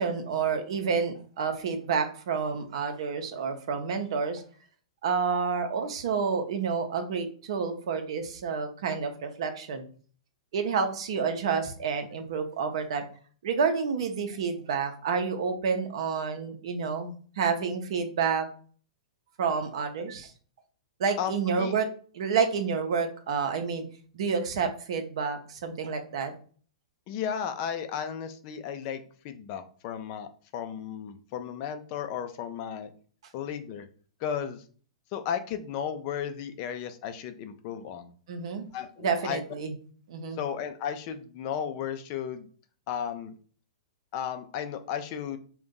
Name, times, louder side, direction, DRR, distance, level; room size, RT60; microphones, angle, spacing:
voice 1, 0.0-4.4 5.0-9.8 10.5-13.0 13.4-18.5 19.4-20.3 21.0-21.9 22.1-23.8 24.1-26.3 38.3-38.6 39.0-39.7 40.1-40.4, right 5 dB, 65° right, 6 dB, 0.7 m, -29 dB
voice 2, 21.2-21.7 27.1-32.9 33.3-33.9 34.2-34.6 35.1-38.1 38.7-39.4 40.4-42.5 42.9-43.3 44.1-45.4, left 8 dB, 45° left, 8 dB, 0.5 m, -34 dB
2.5 x 2.3 x 3.8 m, 0.43 s
hypercardioid pair, 115°, 3 cm